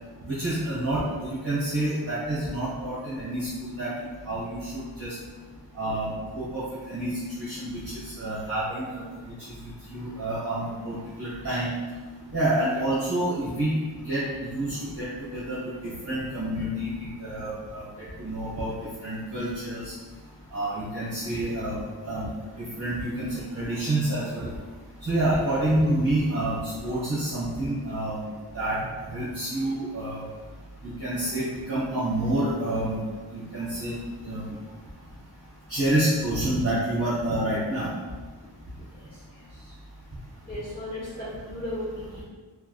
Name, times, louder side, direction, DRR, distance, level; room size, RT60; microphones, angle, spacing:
voice 1, 0.2-3.9 4.2-5.1 5.7-6.6 6.9-7.1 7.4-9.0 9.5-9.6 9.9-11.7 12.3-13.7 14.0-18.7 19.0-19.9 20.5-21.8 22.0-22.3 22.8-24.5 25.0-28.3 28.5-28.8 29.1-30.2 30.8-33.0 33.3-33.9 34.2-34.5 35.7-37.9, right 1 dB, 30° right, -12 dB, 1.4 m, -28 dB
voice 2, 40.5-42.2, left 1 dB, 20° left, -11 dB, 1.0 m, -35 dB
3.5 x 3.2 x 2.3 m, 1.4 s
wide cardioid pair, 70°, 46 cm